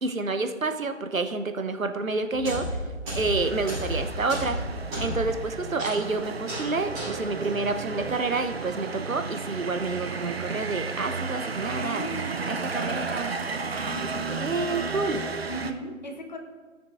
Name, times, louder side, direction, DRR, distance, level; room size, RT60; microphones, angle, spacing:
voice 1, 0.0-2.9 3.2-4.6 5.0-12.0 12.5-13.3 13.7-15.2, right 3 dB, 85° right, 8 dB, 0.9 m, -29 dB
sound 1, 2.3-8.6, equal, 10° right, 3.0 m, -34 dB
sound 2, 3.3-15.7, right 4 dB, 50° right, 0.6 m, -33 dB
voice 2, 11.7-13.2 13.9-14.5 15.4-16.4, right 1 dB, 35° left, 3 dB, 1.0 m, -38 dB
16.0 x 6.6 x 2.5 m, 1.4 s
figure-of-eight pair, 155°, 39 cm